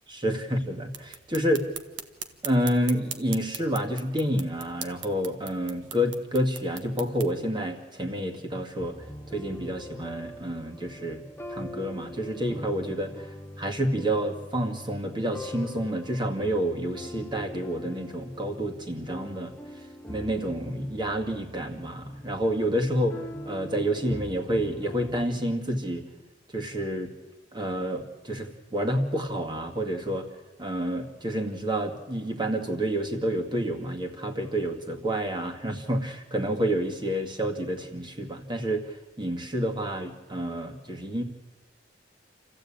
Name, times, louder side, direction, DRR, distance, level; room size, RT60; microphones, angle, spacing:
voice 1, 0.1-1.7 2.4-9.0 9.3-11.2 11.5-13.3 13.6-19.5 20.1-26.0 26.5-27.1 27.5-30.3 30.6-41.2, equal, 25° right, 3 dB, 2.2 m, -29 dB
sound 1, 0.9-7.3, right 7 dB, 75° right, 1.4 m, -41 dB
sound 2, 8.8-25.4, left 1 dB, 10° left, 0.7 m, -43 dB
28.0 x 14.5 x 8.8 m, 1.2 s
head